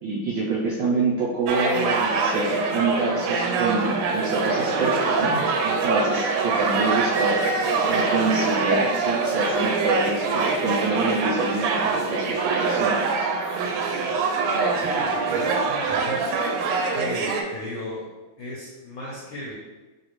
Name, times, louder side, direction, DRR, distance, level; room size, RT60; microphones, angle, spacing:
voice 1, 0.0-7.5 7.9-13.0, right 3 dB, 75° right, -5 dB, 1.1 m, -26 dB
sound 1, 1.5-17.4, right 4 dB, 90° right, 1.5 m, -24 dB
voice 2, 14.7-16.6 16.9-18.1 18.4-19.5, left 1 dB, 65° left, -5 dB, 1.2 m, -36 dB
4.0 x 2.8 x 3.0 m, 1.2 s
omnidirectional pair, 2.4 m